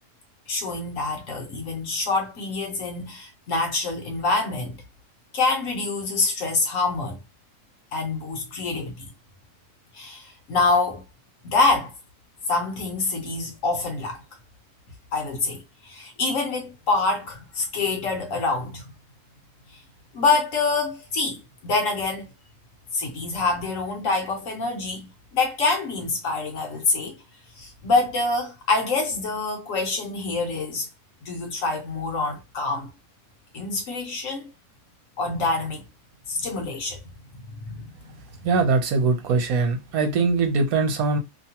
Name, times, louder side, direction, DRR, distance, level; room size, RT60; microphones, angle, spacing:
voice 1, 0.5-4.8 5.3-7.2 7.9-9.1 9.9-11.0 11.4-11.9 12.5-14.2 15.1-18.8 20.1-22.3 22.9-27.2 27.6-30.9 31.3-32.9 33.5-34.4 35.2-35.9 36.3-37.0 37.6-38.1, left 3 dB, 60° left, 1.1 m, -26 dB
voice 2, 38.4-41.2, right 4 dB, 70° right, 1.1 m, -22 dB
2.9 x 2.2 x 2.8 m
omnidirectional pair, 1.6 m